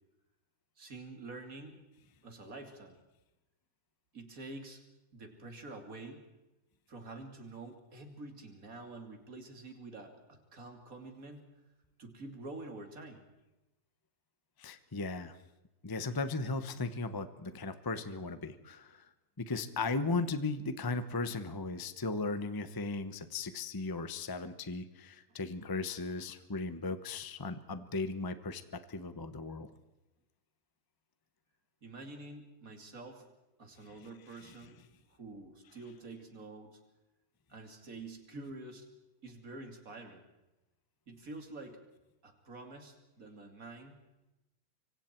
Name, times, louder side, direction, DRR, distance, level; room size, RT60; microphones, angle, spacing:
voice 1, 0.8-1.8 2.2-3.0 4.1-4.8 5.1-6.2 6.9-11.5 12.0-13.2 31.8-33.3 33.6-34.8 35.1-36.8 37.5-38.9 39.2-40.2 41.1-41.8 42.2-44.0, right 2 dB, 65° right, 4 dB, 3.2 m, -47 dB
voice 2, 14.6-15.3 15.8-19.1 19.4-29.7 34.5-34.6, left 3 dB, 20° left, 11 dB, 0.8 m, -37 dB
26.0 x 24.0 x 4.5 m, 0.98 s
omnidirectional pair, 1.6 m